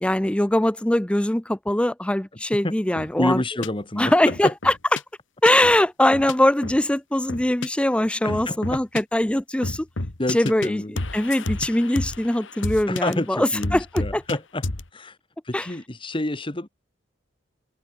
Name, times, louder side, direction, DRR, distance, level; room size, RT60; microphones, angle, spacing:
voice 1, 0.0-3.4 4.0-4.7 5.4-9.9 10.3-14.2 15.5-15.7, left 1 dB, 5° left, 0.4 m, -22 dB
sound 1, 3.0-3.1 3.6-3.7 4.3-5.0 5.5-5.8 6.1-6.3 6.6-6.8 7.3-7.7 8.3-9.0 9.6-10.7 11.0-13.1 13.6-14.4 14.6-14.9, left 2 dB, 75° left, 2.0 m, -30 dB
voice 2, 3.2-4.5 8.2-8.6 10.2-10.9 12.9-14.6 14.9-15.2 15.4-16.7, left 1 dB, 25° left, 1.3 m, -28 dB
open air
head